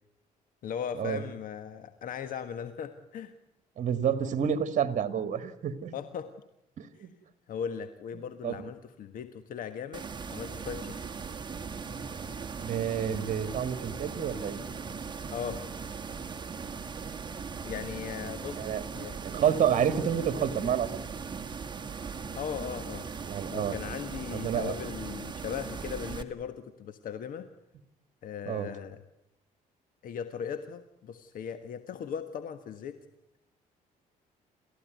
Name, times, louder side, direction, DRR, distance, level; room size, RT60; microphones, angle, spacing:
voice 1, 0.6-3.3 5.9-6.3 7.0-7.1 7.5-10.9 15.3-15.6 17.6-19.2 22.4-23.1 23.5-27.5 28.2-29.0 30.0-33.0, left 8 dB, 65° left, 10 dB, 1.5 m, -38 dB
voice 2, 3.8-5.9 6.8-7.1 8.4-8.6 12.6-14.6 18.5-18.8 19.2-20.9 23.2-23.7 24.3-24.8 28.5-28.7, right 8 dB, 50° right, 11 dB, 2.3 m, -29 dB
sound 1, 9.9-26.2, right 5 dB, 30° right, 2.1 m, -39 dB
29.5 x 14.5 x 9.5 m, 0.84 s
cardioid pair, 100°, 16 cm